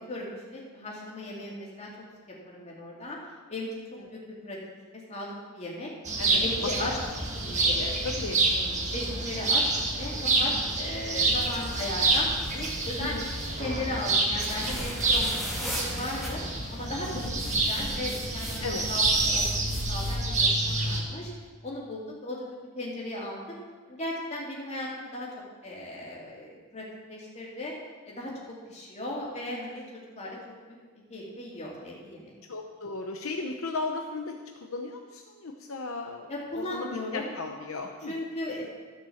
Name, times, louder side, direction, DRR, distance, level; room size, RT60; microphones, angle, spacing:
voice 1, 0.1-1.9 2.4-3.2 3.5-3.7 4.1-4.2 4.4-4.6 5.1-5.9 6.2-6.9 7.6-7.9 8.9-9.6 9.9-13.1 13.6-16.4 16.7-18.6 18.9-19.6 19.9-21.3 21.6-22.5 22.8-23.4 23.9-25.3 25.6-27.7 28.1-29.8 30.2-30.4 30.7-30.8 31.1-32.3 36.3-37.3 38.1-38.6, left 1 dB, 30° left, -4 dB, 2.8 m, -36 dB
sound 1, 6.0-21.0, right 2 dB, 35° right, 1.6 m, -28 dB
voice 2, 7.4-8.4 13.0-13.3 17.3-17.4 18.6-18.9 32.5-34.4 34.6-38.2, left 3 dB, 70° left, 2 dB, 0.8 m, -36 dB
sound 2, 11.3-13.6 14.4-16.3 17.0-20.2, equal, ahead, 2.4 m, -38 dB
13.5 x 6.1 x 7.1 m, 1.5 s
head